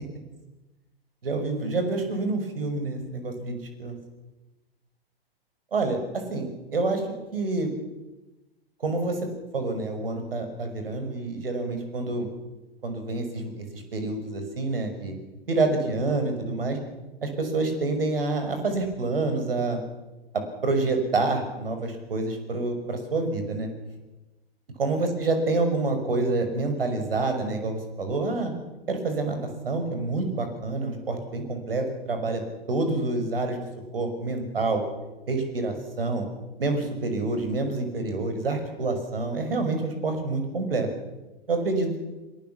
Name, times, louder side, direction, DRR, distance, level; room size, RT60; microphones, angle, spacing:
voice 1, 1.2-3.9 5.7-7.0 7.3-7.7 8.8-9.2 9.5-12.3 12.8-15.1 15.5-16.8 17.2-19.8 20.6-23.7 24.8-28.5 28.9-29.4 29.6-32.4 32.7-33.6 33.9-34.8 35.3-36.3 36.6-40.9 41.5-42.0, right 3 dB, 65° right, 6 dB, 6.0 m, -27 dB
23.0 x 21.5 x 7.2 m, 1.1 s
figure-of-eight pair, 105°, 30 cm